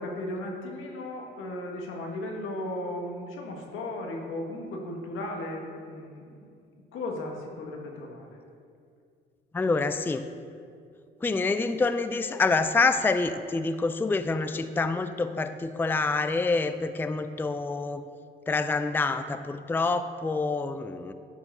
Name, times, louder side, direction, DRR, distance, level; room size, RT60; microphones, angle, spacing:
voice 1, 0.0-6.5 6.9-8.4, left 1 dB, 85° left, 1 dB, 1.5 m, -36 dB
voice 2, 9.5-10.3 11.2-18.0 18.5-21.1, left 3 dB, 10° left, 11 dB, 0.4 m, -27 dB
11.0 x 4.9 x 5.4 m, 2.3 s
cardioid pair, 90°, 20 cm